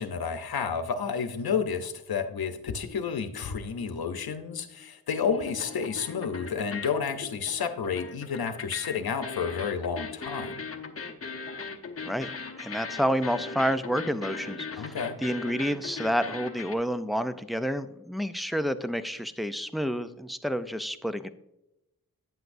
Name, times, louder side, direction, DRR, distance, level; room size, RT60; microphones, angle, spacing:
voice 1, 0.0-10.6 14.8-15.2, left 6 dB, 80° left, 9 dB, 0.8 m, -31 dB
sound 1, 2.7-4.9 5.1-16.7, left 4 dB, 40° left, 0.8 m, -40 dB
voice 2, 12.6-21.3, equal, ahead, 10 dB, 0.4 m, -29 dB
9.1 x 8.0 x 2.6 m, 0.88 s
wide cardioid pair, 75°, 36 cm